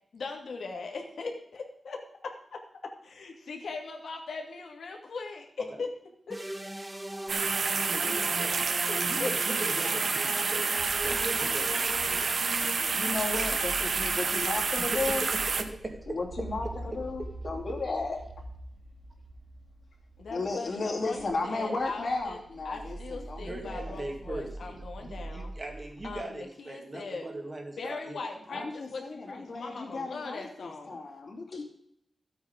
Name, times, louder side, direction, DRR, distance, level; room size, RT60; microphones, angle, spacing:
voice 1, 0.1-2.6 3.0-5.9 6.3-6.4 8.9-9.3 20.2-22.4 22.7-25.5 26.0-27.3 27.8-31.0, left 4 dB, 90° left, 2 dB, 2.0 m, -39 dB
sound 1, 6.3-13.4, right 1 dB, 10° right, 0.4 m, -39 dB
sound 2, 7.3-15.6, right 4 dB, 60° right, 0.9 m, -29 dB
voice 2, 7.9-8.7 9.1-12.5 13.3-13.5 15.2-16.2 23.4-28.2 28.5-28.7, right 2 dB, 25° right, 3 dB, 1.9 m, -41 dB
sound 3, 10.8-26.2, right 2 dB, 85° right, 3.1 m, -44 dB
voice 3, 12.8-15.3 16.1-18.2 20.3-24.0 28.5-31.6, left 3 dB, 55° left, 1 dB, 2.7 m, -34 dB
13.0 x 8.3 x 5.1 m, 0.72 s
wide cardioid pair, 140°, 0 cm